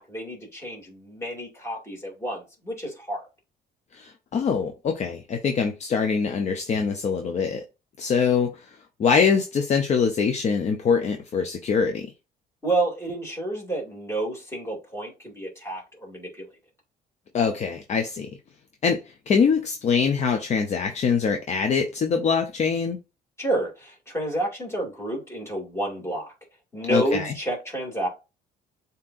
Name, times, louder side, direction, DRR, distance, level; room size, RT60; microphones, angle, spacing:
voice 1, 0.0-3.2 12.6-16.5 23.4-26.3 26.7-28.1, right 2 dB, 15° left, 2.4 m, -30 dB
voice 2, 3.9-7.6 8.0-12.1 17.3-18.3 18.8-23.0 26.9-27.3, left 6 dB, 40° left, 0.6 m, -24 dB
7.1 x 2.9 x 2.5 m
cardioid pair, 110°, 17 cm